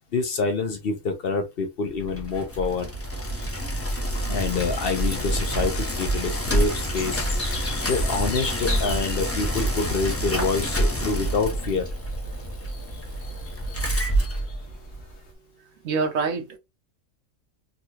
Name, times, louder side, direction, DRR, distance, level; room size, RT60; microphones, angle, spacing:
voice 1, 0.1-2.9 4.3-7.3 7.9-11.9, left 4 dB, 55° left, 0.8 m, -27 dB
Bicycle, 2.0-15.1, right 1 dB, 15° left, 0.5 m, -27 dB
sound 1, 3.3-15.3, left 3 dB, 75° left, 1.4 m, -41 dB
voice 2, 15.8-16.6, right 4 dB, 75° right, 1.1 m, -25 dB
3.7 x 2.3 x 2.8 m
omnidirectional pair, 1.3 m